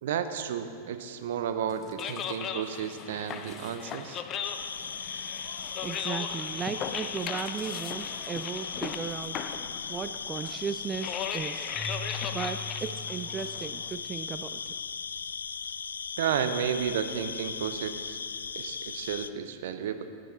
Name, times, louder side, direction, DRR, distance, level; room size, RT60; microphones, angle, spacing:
voice 1, 0.0-4.2 16.2-18.2 18.5-20.0, right 8 dB, 55° right, 9 dB, 0.7 m, -32 dB
sound 1, 1.7-13.9, left 7 dB, 30° left, 0.7 m, -38 dB
sound 2, 4.4-19.3, left 6 dB, 70° left, 0.3 m, -38 dB
voice 2, 5.8-9.4 9.9-11.8 12.3-14.7, right 6 dB, 20° right, 10 dB, 0.3 m, -36 dB
Keyboard (musical), 11.7-14.0, left 4 dB, 15° left, 3.2 m, -41 dB
17.5 x 9.2 x 4.1 m, 2.3 s
figure-of-eight pair, 90°, 0 cm